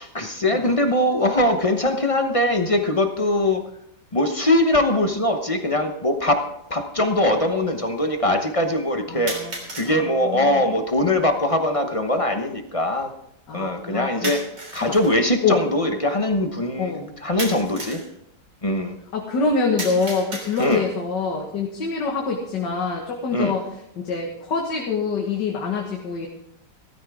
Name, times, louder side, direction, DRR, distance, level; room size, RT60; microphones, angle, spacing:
voice 1, 0.0-3.6 4.1-9.4 9.7-13.1 13.5-14.4 14.7-18.0 18.6-18.9 20.6-20.8 23.3-23.6, left 1 dB, 25° left, 6 dB, 0.8 m, -22 dB
sound 1, 4.9-5.0 6.0-6.1 9.3-9.9 14.2-15.2 17.4-18.1 19.8-21.0, right 2 dB, 80° right, 4.1 m, -33 dB
voice 2, 9.1-9.5 9.8-10.6 13.5-14.3 14.8-15.0 15.4-15.6 16.8-17.1 19.1-23.7 24.0-26.3, left 4 dB, 90° left, -1 dB, 2.2 m, -25 dB
16.5 x 14.0 x 3.6 m, 0.77 s
omnidirectional pair, 1.8 m